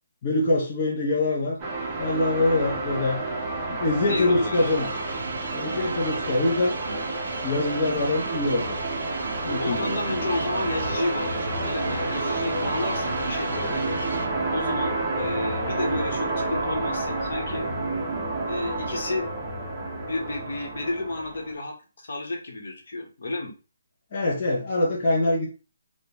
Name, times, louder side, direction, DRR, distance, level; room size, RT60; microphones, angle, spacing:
voice 1, 0.2-1.6 2.0-3.2 3.7-4.9 5.5-6.7 7.4-8.8 9.4-9.9 24.1-25.5, left 2 dB, 25° left, -4 dB, 0.5 m, -24 dB
sound 1, 1.6-21.5, right 2 dB, 15° right, 0.6 m, -30 dB
voice 2, 4.1-4.8 9.6-13.8 14.5-17.7 18.5-19.3 19.8-23.5, left 2 dB, 60° left, 1 dB, 0.9 m, -31 dB
sound 2, 4.5-14.3, right 3 dB, 65° right, 0.5 m, -37 dB
3.3 x 2.1 x 2.9 m, 0.32 s
hypercardioid pair, 170°, 0 cm